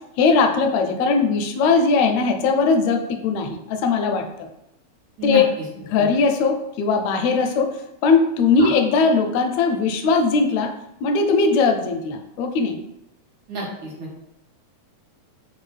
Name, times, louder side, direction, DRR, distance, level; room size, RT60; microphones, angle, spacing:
voice 1, 0.2-4.5 5.2-5.5 5.8-7.8 8.0-10.7 11.0-12.8, left 4 dB, 80° left, 5 dB, 1.7 m, -19 dB
voice 2, 5.2-5.7 6.0-6.1 8.6-8.7 13.5-14.2, left 2 dB, 80° right, -5 dB, 2.6 m, -29 dB
5.4 x 2.3 x 3.2 m, 0.85 s
omnidirectional pair, 3.3 m